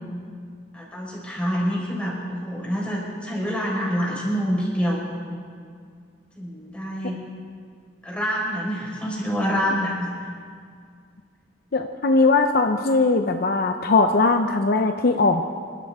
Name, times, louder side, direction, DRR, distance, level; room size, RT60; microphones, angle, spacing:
voice 1, 0.7-5.1 6.4-7.2 8.0-10.1, equal, 5° left, -5 dB, 4.5 m, -26 dB
voice 2, 11.7-15.4, left 3 dB, 55° left, 6 dB, 0.6 m, -20 dB
27.5 x 12.5 x 3.6 m, 2.1 s
head